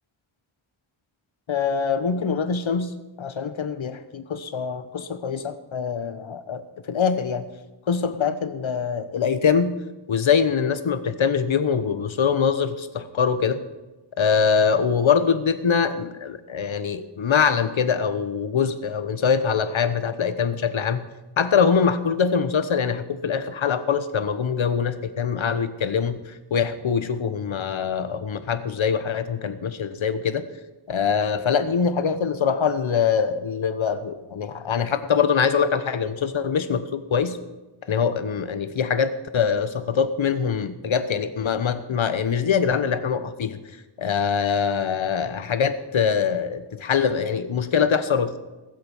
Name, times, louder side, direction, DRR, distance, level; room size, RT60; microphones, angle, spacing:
voice 1, 1.5-6.6 6.9-7.4 7.9-9.8 10.1-13.6 14.2-21.0 21.4-30.4 30.9-37.4 37.9-43.6 44.0-48.4, left 6 dB, 75° left, 11 dB, 1.1 m, -23 dB
20.0 x 7.7 x 5.5 m, 1.1 s
wide cardioid pair, 95°, 47 cm